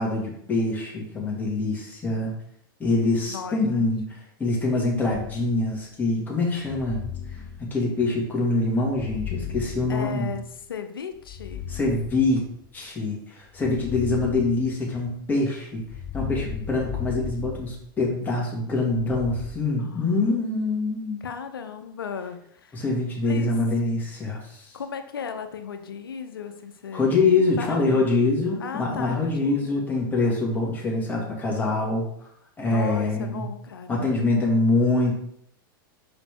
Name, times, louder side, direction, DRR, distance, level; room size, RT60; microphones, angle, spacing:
voice 1, 0.0-2.3 2.8-7.0 7.6-10.3 11.7-12.4 12.7-15.8 16.1-21.2 22.7-24.7 26.9-32.1 32.6-33.5 33.9-35.1, left 2 dB, 15° left, -3 dB, 2.1 m, -24 dB
voice 2, 3.3-3.9 9.9-11.7 15.0-15.2 19.8-20.2 21.2-22.8 23.2-23.5 24.7-27.1 27.6-28.1 28.6-29.8 32.7-34.0, left 6 dB, 90° left, 8 dB, 0.8 m, -36 dB
sound 1, 5.1-5.8 6.6-8.3 8.9-10.7 11.2-12.8 13.6-15.2 15.8-18.3 18.9-19.5, left 8 dB, 30° left, 0.5 m, -36 dB
5.4 x 4.9 x 3.6 m, 0.70 s
hypercardioid pair, 110°, 12 cm